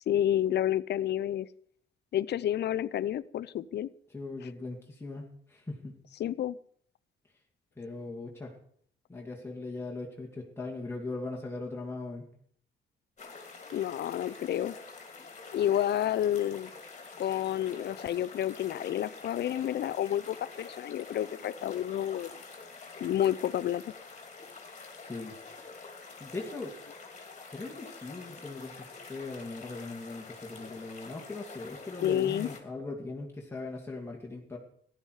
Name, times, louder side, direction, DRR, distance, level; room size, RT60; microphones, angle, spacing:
voice 1, 0.1-1.5 2.1-3.9 6.2-6.6 13.7-14.8 15.5-16.7 17.2-22.3 23.0-23.9 32.0-32.5, left 11 dB, 60° left, 18 dB, 0.6 m, -30 dB
voice 2, 4.1-6.0 7.8-8.5 9.1-12.3 25.0-25.4 26.2-26.7 27.5-34.6, left 3 dB, 10° left, -2 dB, 2.5 m, -39 dB
sound 1, 13.2-32.6, left 4 dB, 35° left, 2.9 m, -47 dB
14.5 x 11.0 x 4.9 m, 0.62 s
cardioid pair, 90°, 20 cm